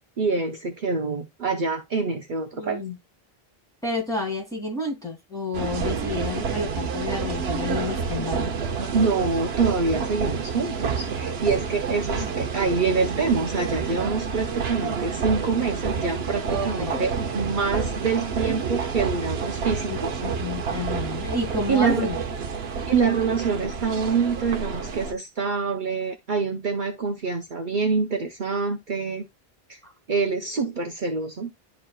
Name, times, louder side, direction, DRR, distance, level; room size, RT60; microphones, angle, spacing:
voice 1, 0.2-2.8 8.9-20.2 21.7-22.1 22.9-29.3 29.7-29.8 30.1-31.5, right 4 dB, 55° right, 1.0 m, -26 dB
voice 2, 2.5-2.9 3.8-8.5 12.2-12.3 16.4-17.4 19.9-22.2 29.8-29.9, left 2 dB, 5° left, 2.8 m, -30 dB
sound 1, 5.5-25.1, right 5 dB, 80° right, 1.1 m, -29 dB
11.5 x 3.9 x 2.3 m
omnidirectional pair, 1.0 m